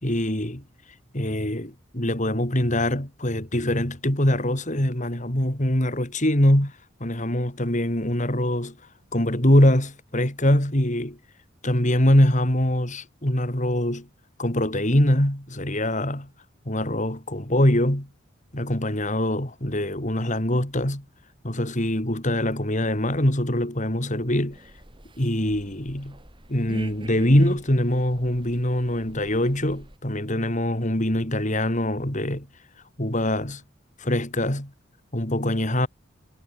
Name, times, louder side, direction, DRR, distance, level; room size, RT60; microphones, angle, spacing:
voice 1, 0.0-0.6 1.1-6.7 7.0-8.7 9.1-11.2 11.6-14.1 14.4-16.3 16.7-18.1 18.5-21.0 21.4-24.6 25.2-26.2 26.5-32.5 33.0-33.6 34.0-34.7 35.1-35.9, left 1 dB, 40° left, 4.2 m, -23 dB
sound 1, 24.5-30.0, right 1 dB, 25° right, 5.0 m, -44 dB
head